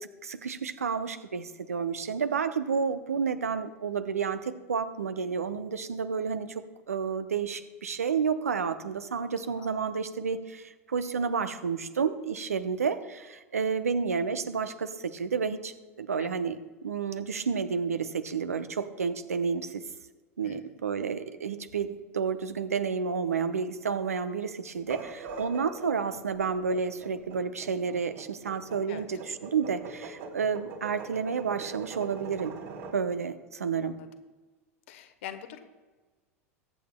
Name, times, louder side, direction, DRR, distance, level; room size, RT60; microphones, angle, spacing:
voice 1, 0.2-19.8 20.4-32.5 32.9-34.0, right 6 dB, 75° right, 11 dB, 0.7 m, -30 dB
voice 2, 20.4-20.7 28.9-29.1 33.8-34.1 34.9-35.7, left 11 dB, 55° left, 9 dB, 1.1 m, -44 dB
sound 1, 24.8-33.0, right 4 dB, 55° right, 2.9 m, -42 dB
22.0 x 8.4 x 2.2 m, 1.3 s
figure-of-eight pair, 85°, 8 cm